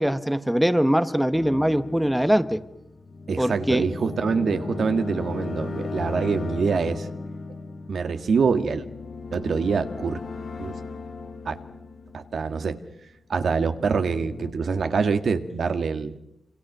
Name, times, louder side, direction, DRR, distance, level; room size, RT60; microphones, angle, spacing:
voice 1, 0.0-2.6 3.4-3.9, equal, 5° right, 11 dB, 1.1 m, -22 dB
sound 1, 1.3-13.0 13.4-14.5, left 3 dB, 55° left, 2.6 m, -36 dB
voice 2, 3.3-7.1 7.9-8.9 9.3-10.2 10.6-10.7 11.5-11.6 12.1-12.8 13.3-16.2, right 5 dB, 75° right, 8 dB, 1.9 m, -25 dB
27.0 x 27.0 x 6.7 m, 0.84 s
wide cardioid pair, 140°, 0 cm